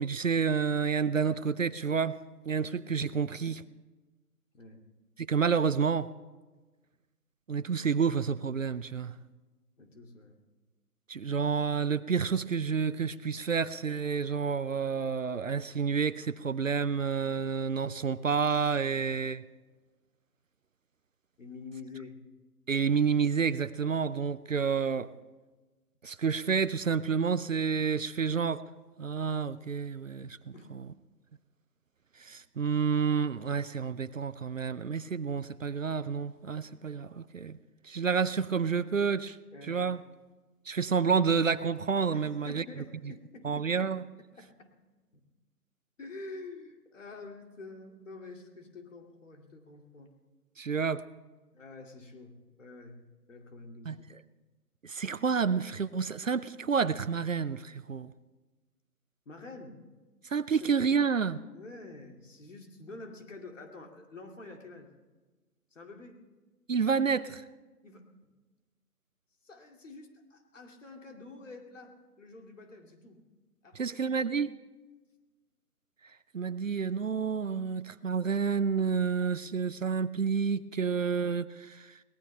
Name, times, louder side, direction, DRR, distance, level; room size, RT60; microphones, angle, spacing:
voice 1, 0.0-2.2 2.5-3.6 5.3-6.1 7.5-9.2 11.1-19.4 22.7-25.1 26.0-28.6 29.0-30.8 32.2-37.6 37.8-39.4 39.6-40.0 40.7-42.6 43.4-44.0 50.6-51.0 53.9-54.0 54.8-58.1 60.3-61.4 66.7-67.4 73.7-74.5 76.3-81.9, right 6 dB, 55° right, 15 dB, 0.6 m, -29 dB
voice 2, 9.8-10.4 21.4-22.3 30.5-30.7 39.5-39.9 42.1-43.8 44.4-44.7 45.1-45.2 46.0-50.1 51.5-54.1 59.3-59.8 60.5-60.8 61.5-64.9 65.7-66.2 67.8-68.3 69.4-73.2 73.6-74.2, left 3 dB, 50° left, 3 dB, 2.5 m, -48 dB
22.5 x 18.5 x 3.3 m, 1.2 s
figure-of-eight pair, 160°, 47 cm